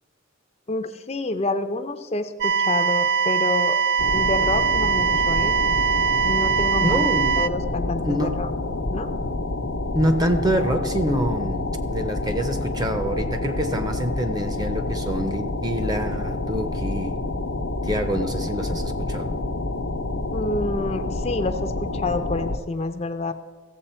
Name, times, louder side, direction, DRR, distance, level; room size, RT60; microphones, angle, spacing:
voice 1, 0.7-3.8 4.1-5.5 6.2-7.0 7.4-8.5 8.9-9.1 20.3-23.3, left 2 dB, 30° left, 8 dB, 0.5 m, -28 dB
sound 1, 2.4-7.5, right 6 dB, 55° right, 0.3 m, -22 dB
sound 2, 4.0-22.6, left 2 dB, 85° left, 0.7 m, -28 dB
voice 2, 6.8-7.4 8.0-8.4 9.9-17.2 17.8-19.3, equal, 20° right, 7 dB, 0.7 m, -26 dB
15.0 x 7.5 x 4.3 m, 1.5 s
head